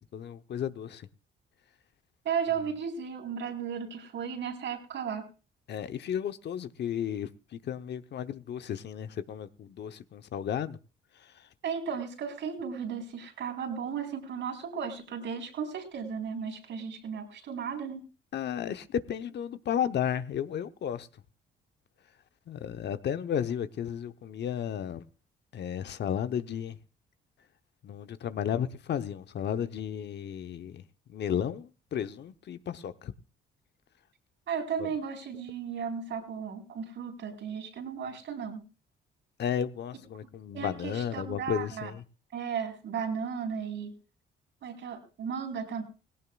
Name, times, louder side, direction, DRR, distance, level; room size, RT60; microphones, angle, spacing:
voice 1, 0.1-1.1 5.7-7.3 7.7-10.8 18.3-21.1 22.5-25.0 25.5-26.8 27.8-30.8 31.1-33.1 34.8-34.9 39.4-42.0, left 9 dB, 60° left, 0.8 m, -33 dB
voice 2, 2.2-5.3 11.6-18.0 34.5-38.6 40.5-41.9 42.3-43.9 44.6-45.8, right 7 dB, 70° right, 4.0 m, -35 dB
18.0 x 17.0 x 2.3 m
cardioid pair, 90°, 20 cm